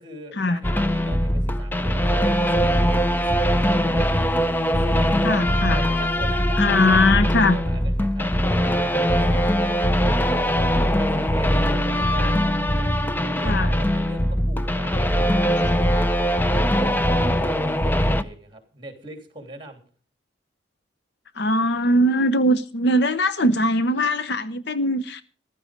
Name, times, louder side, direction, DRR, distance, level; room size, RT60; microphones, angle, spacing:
voice 1, 0.0-4.2 4.6-6.6 7.0-10.4 10.8-19.8, right 1 dB, 25° right, 3.1 m, -41 dB
sound 1, 0.6-18.2, equal, 10° left, 0.6 m, -21 dB
voice 2, 5.2-5.8 6.6-7.6 13.4-13.7 21.4-25.2, left 1 dB, 60° left, 0.7 m, -20 dB
14.5 x 12.5 x 5.1 m
head